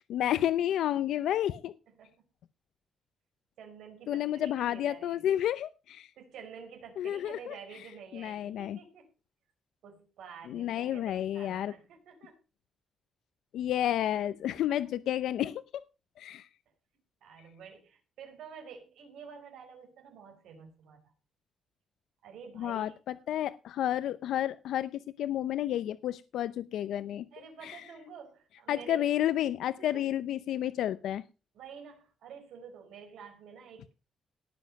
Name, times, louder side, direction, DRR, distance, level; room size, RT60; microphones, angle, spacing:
voice 1, 0.1-1.7 4.1-6.1 7.0-7.5 8.1-8.8 10.5-11.7 13.5-15.6 16.2-16.5 22.6-27.3 27.6-27.8 28.7-31.2, left 11 dB, 85° left, 14 dB, 0.6 m, -31 dB
voice 2, 3.6-5.4 6.2-9.1 9.8-12.4 14.7-14.8 17.2-21.0 22.2-23.0 27.3-29.1 29.8-30.1 31.5-33.9, right 6 dB, 90° right, 4 dB, 5.0 m, -49 dB
18.5 x 7.3 x 5.3 m, 0.31 s
cardioid pair, 165°, 0 cm